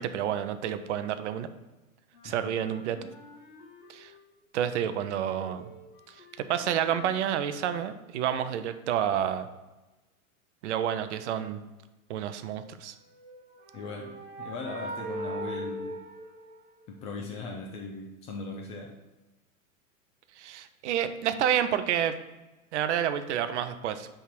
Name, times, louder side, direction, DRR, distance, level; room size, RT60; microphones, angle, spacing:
voice 1, 0.0-1.5 2.2-3.0 3.9-4.1 4.5-5.7 6.5-9.5 10.6-11.6 12.1-12.9 20.4-22.1 22.7-24.1, right 10 dB, 55° right, 11 dB, 0.6 m, -29 dB
Wind instrument woodwind instrument, 2.1-4.3 4.6-7.7, left 3 dB, 35° left, 1.4 m, -52 dB
sound 1, 13.1-17.0, right 1 dB, 35° right, 1.9 m, -39 dB
voice 2, 13.7-16.0 16.9-18.9, left 3 dB, 15° left, 0 dB, 0.3 m, -39 dB
5.5 x 3.6 x 5.9 m, 1.1 s
figure-of-eight pair, 100°, 43 cm